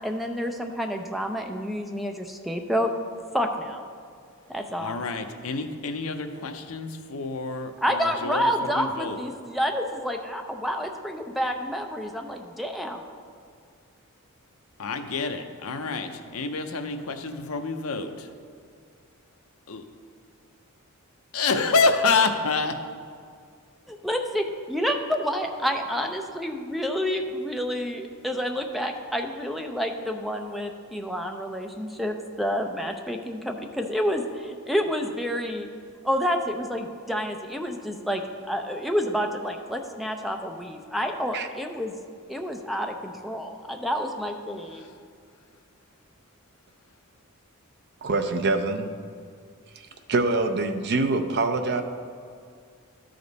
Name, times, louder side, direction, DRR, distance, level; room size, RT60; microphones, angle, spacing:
voice 1, 0.0-2.9 3.3-3.8 4.5-5.1 7.8-13.0 23.9-35.7 36.0-38.2 38.5-41.9 42.3-44.9, equal, ahead, 4 dB, 0.5 m, -29 dB
voice 2, 4.8-9.2 14.8-18.3 19.7-19.8 21.3-22.8, left 4 dB, 70° left, 6 dB, 0.7 m, -27 dB
voice 3, 48.0-48.9 50.1-51.8, right 3 dB, 50° right, 7 dB, 0.6 m, -24 dB
13.0 x 5.1 x 4.0 m, 2.2 s
head